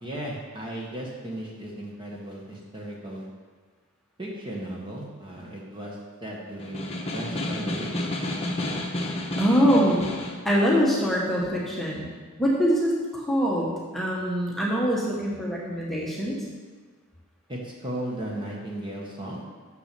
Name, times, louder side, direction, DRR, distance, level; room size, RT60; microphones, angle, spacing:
voice 1, 0.0-3.3 4.2-8.1 17.5-19.4, right 1 dB, 20° right, -3 dB, 1.2 m, -36 dB
Snare drum, 6.6-10.4, left 1 dB, 25° left, 1.0 m, -31 dB
voice 2, 9.4-10.1 10.4-12.1 12.4-16.4, equal, ahead, -5 dB, 1.2 m, -23 dB
6.6 x 6.0 x 6.7 m, 1.4 s
head